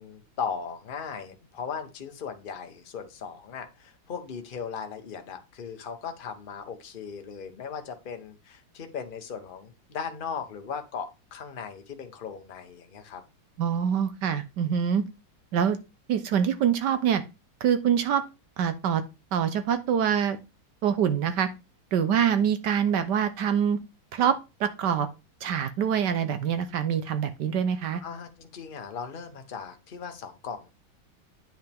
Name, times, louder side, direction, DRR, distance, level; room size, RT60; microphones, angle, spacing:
voice 1, 0.0-13.2 28.0-30.7, left 6 dB, 35° left, 6 dB, 0.9 m, -38 dB
voice 2, 13.6-15.0 15.5-15.8 16.1-17.2 17.6-18.2 18.6-19.0 19.3-20.4 20.8-21.5 21.9-23.8 24.1-25.1 25.4-28.0, right 8 dB, 70° right, 11 dB, 1.3 m, -25 dB
9.1 x 5.5 x 3.5 m, 0.27 s
omnidirectional pair, 2.1 m